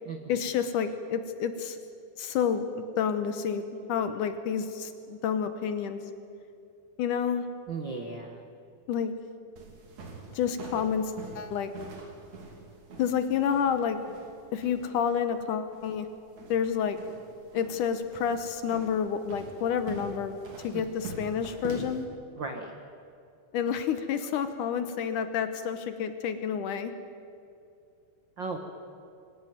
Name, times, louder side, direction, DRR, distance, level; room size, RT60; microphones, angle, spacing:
voice 1, 0.3-1.8 2.2-3.6 3.9-6.1 7.0-7.5 8.9-9.1 10.3-11.7 13.0-14.0 14.5-16.1 16.5-17.0 17.5-20.3 20.6-22.1 23.5-26.9, left 7 dB, 70° left, 9 dB, 2.2 m, -29 dB
voice 2, 7.7-8.4 22.4-22.7 28.4-28.6, right 4 dB, 75° right, 4 dB, 1.0 m, -35 dB
sound 1, 9.6-22.0, right 4 dB, 50° right, 3.7 m, -45 dB
24.5 x 16.5 x 9.3 m, 2.5 s
omnidirectional pair, 4.3 m